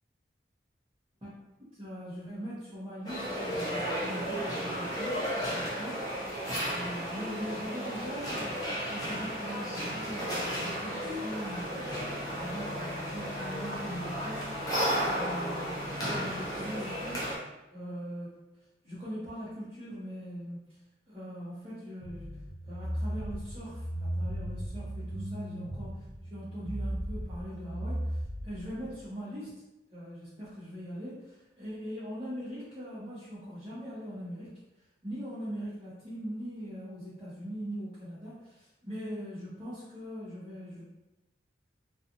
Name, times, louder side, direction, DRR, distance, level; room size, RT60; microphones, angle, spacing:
voice 1, 1.7-6.0 6.7-8.6 8.9-12.1 12.3-14.6 15.1-17.3 17.7-18.3 18.8-20.8 21.1-22.4 22.6-29.6 29.9-34.5 35.0-40.8, equal, 30° right, -12 dB, 0.7 m, -41 dB
sound 1, 3.0-17.4, equal, 20° left, 0.5 m, -34 dB
sound 2, 22.0-28.9, right 1 dB, 75° right, 0.4 m, -36 dB
2.5 x 2.3 x 2.6 m, 0.99 s
head